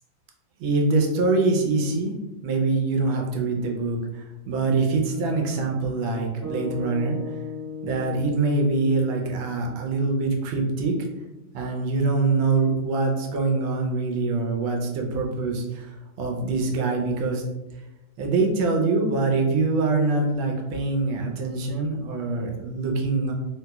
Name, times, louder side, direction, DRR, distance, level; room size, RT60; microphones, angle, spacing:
voice 1, 0.6-2.1 2.4-7.3 7.8-10.9 11.5-17.4 18.2-23.3, right 3 dB, 80° right, 1 dB, 1.4 m, -24 dB
sound 1, 6.4-10.7, left 3 dB, 20° right, 0.3 m, -37 dB
3.3 x 2.9 x 2.2 m, 1.0 s
omnidirectional pair, 2.1 m